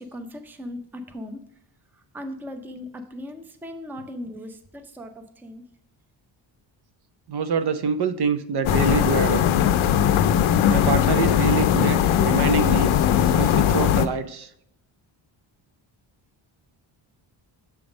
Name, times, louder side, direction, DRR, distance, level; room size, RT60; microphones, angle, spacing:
voice 1, 0.0-1.4 1.9-5.6, left 1 dB, 5° right, 7 dB, 0.5 m, -38 dB
voice 2, 7.3-9.6 10.7-14.5, right 5 dB, 55° right, 11 dB, 0.6 m, -26 dB
sound 1, 8.7-14.1, left 9 dB, 80° left, 0.6 m, -19 dB
7.0 x 3.5 x 5.0 m, 0.74 s
wide cardioid pair, 130°, 49 cm